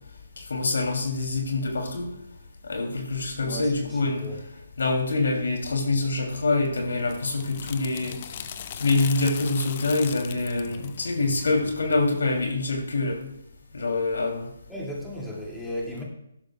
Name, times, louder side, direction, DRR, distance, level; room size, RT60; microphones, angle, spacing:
voice 1, 0.4-2.1 2.6-4.3 4.8-8.2 8.7-13.2 13.7-14.5, left 3 dB, 75° left, 2 dB, 2.8 m, -25 dB
voice 2, 3.3-4.4 14.7-16.0, left 1 dB, ahead, -5 dB, 2.4 m, -35 dB
sound 1, 6.7-12.1, left 8 dB, 40° left, 0.7 m, -40 dB
15.0 x 11.5 x 2.3 m, 0.79 s
hypercardioid pair, 150°, 0 cm